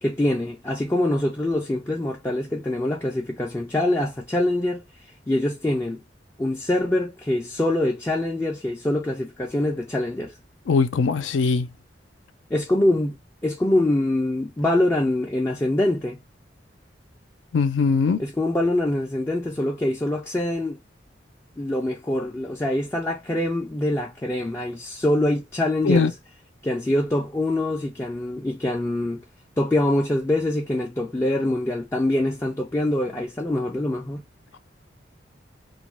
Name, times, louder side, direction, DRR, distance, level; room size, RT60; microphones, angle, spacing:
voice 1, 0.0-4.8 5.3-6.0 6.4-10.4 12.5-16.2 18.2-20.8 21.6-26.1 26.6-29.2 29.6-34.2, left 1 dB, 15° left, 0.3 m, -24 dB
voice 2, 10.7-11.7 17.5-18.2 25.8-26.1, left 5 dB, 80° left, 0.4 m, -20 dB
2.3 x 2.2 x 2.9 m
head